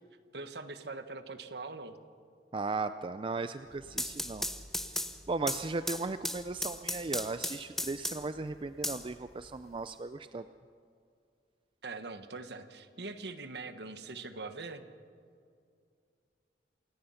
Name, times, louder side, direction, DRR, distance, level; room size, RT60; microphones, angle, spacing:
voice 1, 0.3-2.0 11.8-14.9, right 3 dB, 65° right, 9 dB, 1.3 m, -42 dB
voice 2, 2.5-4.5 5.3-10.4, right 3 dB, 30° right, 11 dB, 0.4 m, -36 dB
sound 1, 3.7-8.4 8.8-9.8, left 1 dB, ahead, 0.9 m, -36 dB
27.5 x 17.5 x 5.7 m, 2.3 s
head